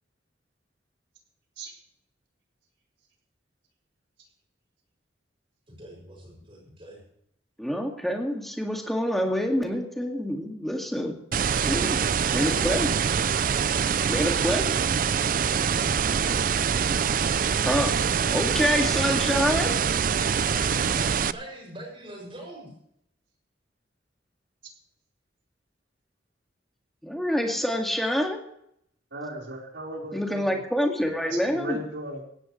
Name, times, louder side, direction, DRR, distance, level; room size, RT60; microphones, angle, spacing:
voice 1, 5.7-7.0 12.2-12.8 20.5-22.7, right 1 dB, 30° right, 0 dB, 6.9 m, -42 dB
voice 2, 7.6-11.2 11.6-12.0 12.3-12.9 14.1-14.7 17.6-18.0 18.3-19.8 27.0-28.4 30.1-31.8, equal, ahead, 1 dB, 2.2 m, -26 dB
sound 1, 11.3-21.3, right 7 dB, 45° right, 0.4 m, -24 dB
voice 3, 29.1-30.6 31.2-32.3, right 1 dB, 75° right, -1 dB, 4.7 m, -36 dB
17.5 x 16.5 x 3.3 m, 0.71 s
head